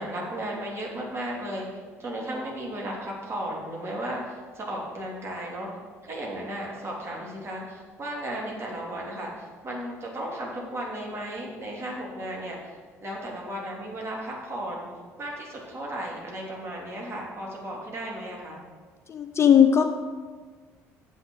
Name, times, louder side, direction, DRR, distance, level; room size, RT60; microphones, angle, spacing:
voice 1, 0.0-5.7 6.0-14.9 15.2-18.6, right 1 dB, 35° right, -2 dB, 3.3 m, -35 dB
voice 2, 19.1-19.8, left 8 dB, 35° left, 6 dB, 0.8 m, -18 dB
7.5 x 6.5 x 8.1 m, 1.5 s
hypercardioid pair, 55°, 8 cm